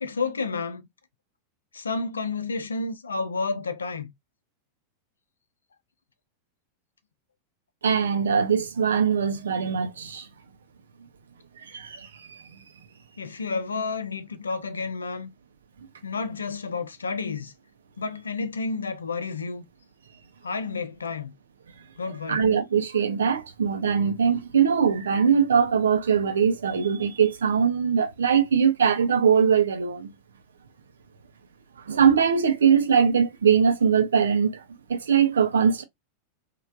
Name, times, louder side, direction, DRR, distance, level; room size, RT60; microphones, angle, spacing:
voice 1, 0.0-0.9 1.7-4.1 13.2-15.3 16.0-17.5 18.0-19.6 20.4-21.3 22.0-22.5, left 4 dB, 75° left, 0.5 m, -30 dB
voice 2, 7.8-10.3 11.6-12.4 22.3-30.1 31.9-34.6 34.9-35.8, right 7 dB, 65° right, 0.6 m, -21 dB
3.1 x 2.4 x 2.5 m
figure-of-eight pair, 90°, 0 cm